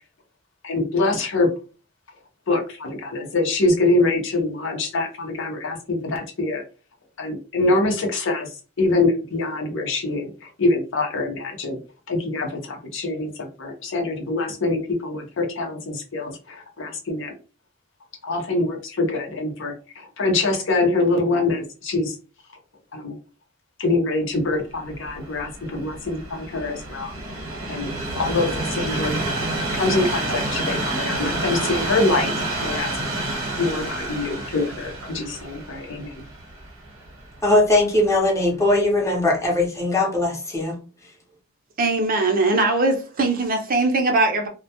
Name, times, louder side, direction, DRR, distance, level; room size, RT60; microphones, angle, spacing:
voice 1, 0.6-1.5 2.5-6.6 7.2-8.5 8.8-11.8 12.1-17.3 18.2-22.2 22.9-23.2 23.8-27.1 27.7-29.2 29.7-32.3 32.6-32.9 33.6-36.2, left 2 dB, 65° left, 0.6 m, -24 dB
Train, 24.7-37.9 38.6-38.8, right 2 dB, 85° right, 0.8 m, -29 dB
voice 2, 37.4-40.8, left 2 dB, 15° left, 0.7 m, -20 dB
voice 3, 41.8-44.5, right 2 dB, 45° right, 0.5 m, -20 dB
2.1 x 2.1 x 2.8 m
head